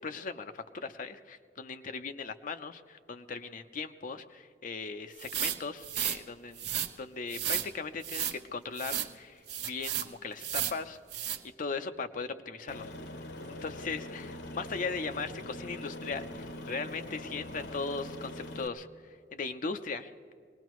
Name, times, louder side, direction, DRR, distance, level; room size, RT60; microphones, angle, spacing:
voice 1, 0.0-6.7 7.0-11.0 11.6-12.9 13.5-20.1, left 4 dB, 50° left, 7 dB, 0.6 m, -38 dB
sound 1, 5.2-6.2 6.6-6.9 7.3-7.7 8.0-8.4 8.8-9.1 9.5-10.1 10.4-10.8 11.1-11.4, right 10 dB, 70° right, 0.8 m, -33 dB
Aircraft, 12.7-18.7, left 1 dB, 85° left, 1.0 m, -43 dB
24.5 x 19.0 x 3.1 m, 2.3 s
head